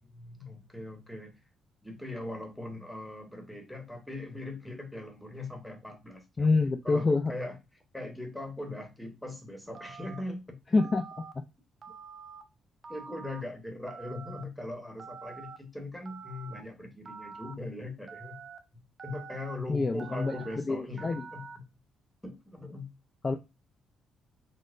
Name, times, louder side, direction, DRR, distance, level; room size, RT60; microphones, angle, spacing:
voice 1, 0.0-1.4 1.8-6.5 6.8-7.6 7.9-10.6 12.9-18.4 19.0-21.5 22.2-22.9, left 2 dB, 5° left, 4 dB, 1.0 m, -40 dB
voice 2, 6.4-7.3 10.7-11.0 19.7-20.3 20.7-21.2 23.2-23.3, left 3 dB, 30° left, 4 dB, 0.3 m, -26 dB
Telephone, 9.7-10.2 10.8-11.3 11.8-12.4 12.8-13.4 13.9-14.4 15.0-15.6 16.0-16.6 17.0-17.5 18.1-18.6 19.0-19.6 20.0-20.5 21.0-21.6, right 5 dB, 45° right, 0.5 m, -46 dB
4.1 x 2.0 x 2.5 m, 0.25 s
cardioid pair, 90°, 0 cm